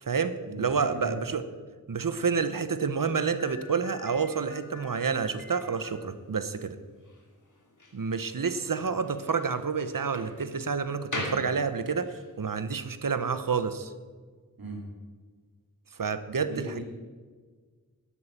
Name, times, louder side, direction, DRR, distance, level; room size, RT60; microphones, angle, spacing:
voice 1, 0.0-1.4 1.9-6.8 7.9-13.9 16.0-16.8, right 5 dB, 65° right, 12 dB, 0.8 m, -29 dB
Slam, 2.9-12.3, left 1 dB, 60° left, 2.6 m, -43 dB
voice 2, 16.4-16.8, right 1 dB, 85° right, -1 dB, 2.5 m, -37 dB
11.5 x 8.5 x 7.3 m, 1.5 s
wide cardioid pair, 50°, 35 cm